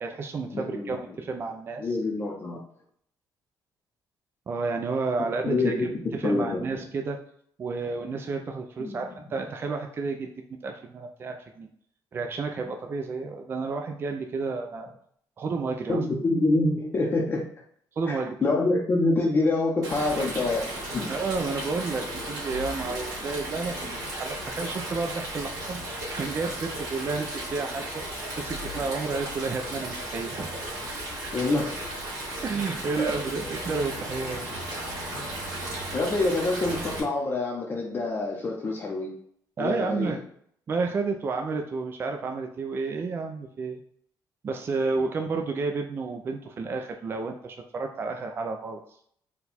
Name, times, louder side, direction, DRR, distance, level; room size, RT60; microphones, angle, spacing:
voice 1, 0.0-1.9 4.5-5.8 6.1-7.2 7.6-10.3 10.6-11.7 12.1-14.9 15.4-16.0 18.0-18.4 21.1-25.8 26.1-28.0 28.4-30.5 32.4-34.5 39.6-40.2 40.7-43.8 44.4-48.8, right 4 dB, 30° right, 4 dB, 0.4 m, -31 dB
voice 2, 0.5-1.2 1.8-2.6 5.5-6.6 8.8-9.1 15.9-17.4 18.1-21.1 31.3-31.8 33.0-33.1 35.1-35.3 35.9-39.1 39.6-40.2, left 2 dB, 30° left, -2 dB, 0.6 m, -26 dB
Stream, 19.8-37.0, right 1 dB, 60° right, 1.8 m, -35 dB
4.3 x 2.3 x 4.0 m, 0.66 s
cardioid pair, 140°, 7 cm